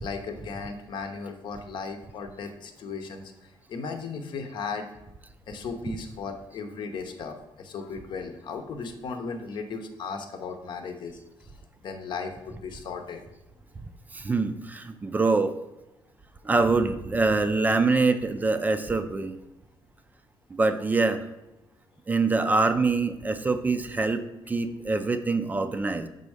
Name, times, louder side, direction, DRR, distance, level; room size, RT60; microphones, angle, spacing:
voice 1, 0.0-3.3 3.7-4.9 5.5-11.5 11.8-13.2, left 4 dB, 60° left, 6 dB, 0.8 m, -36 dB
voice 2, 14.1-15.5 16.4-19.4 20.5-21.2 22.1-26.1, right 3 dB, 20° right, 9 dB, 0.4 m, -24 dB
5.4 x 4.0 x 4.8 m, 0.95 s
cardioid pair, 130°, 9 cm